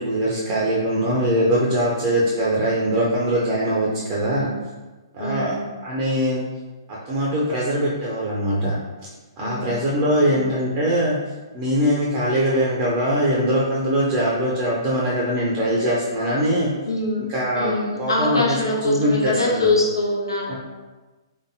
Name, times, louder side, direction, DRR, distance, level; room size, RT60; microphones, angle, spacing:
voice 1, 0.0-4.5 5.1-6.4 6.9-8.7 9.4-11.2 11.5-16.7 17.3-18.6 18.8-19.7 20.5-20.6, equal, 25° right, -5 dB, 0.6 m, -22 dB
voice 2, 5.2-5.6 9.4-9.7 10.3-10.4 16.9-17.2 17.5-20.5, left 2 dB, 75° left, -3 dB, 1.1 m, -24 dB
4.0 x 3.4 x 2.6 m, 1.2 s
figure-of-eight pair, 120°, 2 cm